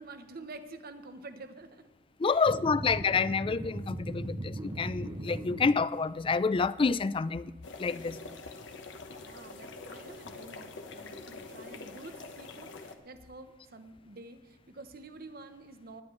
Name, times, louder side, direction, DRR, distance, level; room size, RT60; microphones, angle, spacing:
voice 1, 0.0-1.9 2.3-2.8 8.8-16.0, right 2 dB, 55° right, 1.0 m, -49 dB
voice 2, 2.2-7.5 7.8-8.2, left 4 dB, 30° left, 0.3 m, -28 dB
sound 1, 2.5-5.7, right 1 dB, 25° right, 0.8 m, -38 dB
sound 2, 7.6-13.0, left 3 dB, 75° left, 1.1 m, -45 dB
18.0 x 10.5 x 3.2 m
head